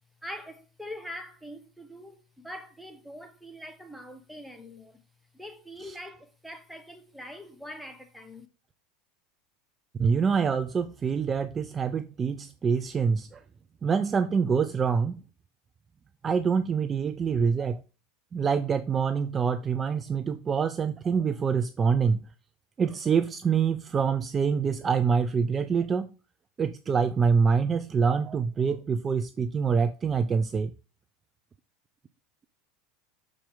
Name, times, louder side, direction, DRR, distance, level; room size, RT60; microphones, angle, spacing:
voice 1, 0.2-5.0 5.3-8.5, left 1 dB, ahead, 1.0 m, -43 dB
voice 2, 10.0-13.4 13.8-15.2 16.2-17.8 18.3-22.2 22.8-26.1 26.6-30.7, right 6 dB, 25° right, 0.4 m, -25 dB
6.2 x 4.3 x 3.7 m
supercardioid pair, 105°, 0 cm